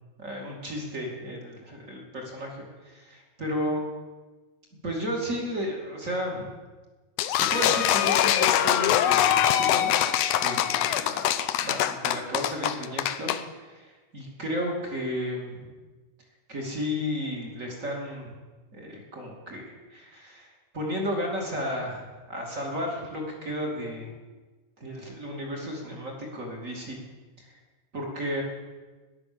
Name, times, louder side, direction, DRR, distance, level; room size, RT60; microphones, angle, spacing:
voice 1, 0.2-3.8 4.8-6.5 7.5-9.9 10.4-15.7 16.5-18.3 18.7-20.5 20.7-24.1 24.8-27.0 27.9-28.4, equal, 25° right, 0 dB, 2.8 m, -33 dB
sound 1, 7.2-13.4, left 11 dB, 75° left, 1.6 m, -23 dB
13.5 x 11.0 x 6.9 m, 1.3 s
omnidirectional pair, 3.5 m